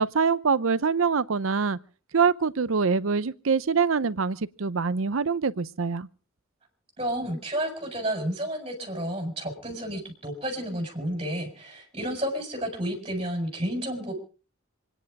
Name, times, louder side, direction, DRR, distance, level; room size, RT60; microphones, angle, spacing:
voice 1, 0.0-1.8 2.1-6.1, right 5 dB, 75° right, 0.7 m, -24 dB
voice 2, 7.0-14.1, right 1 dB, 25° right, 4.7 m, -31 dB
26.5 x 10.0 x 4.8 m
head